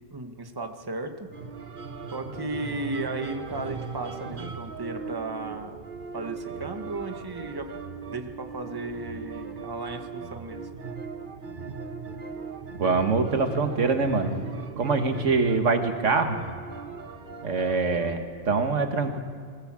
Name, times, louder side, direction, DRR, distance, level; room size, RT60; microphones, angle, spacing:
voice 1, 0.1-1.3 2.1-5.8 6.1-7.7 8.1-10.7, right 2 dB, 20° right, 5 dB, 1.3 m, -35 dB
sound 1, 1.3-18.6, right 5 dB, 45° right, 1.3 m, -38 dB
voice 2, 12.8-14.4 14.8-16.4 17.4-19.2, right 4 dB, 85° right, 6 dB, 1.8 m, -24 dB
19.5 x 18.5 x 7.5 m, 2.1 s
omnidirectional pair, 1.2 m